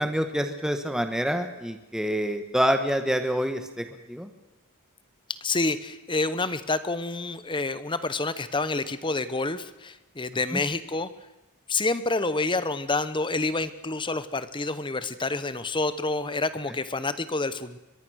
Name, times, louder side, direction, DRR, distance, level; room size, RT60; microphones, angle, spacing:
voice 1, 0.0-4.3, equal, 5° right, 6 dB, 1.3 m, -27 dB
voice 2, 5.4-11.1 11.7-17.8, left 3 dB, 20° left, 13 dB, 1.0 m, -28 dB
24.0 x 21.5 x 6.4 m, 1.0 s
head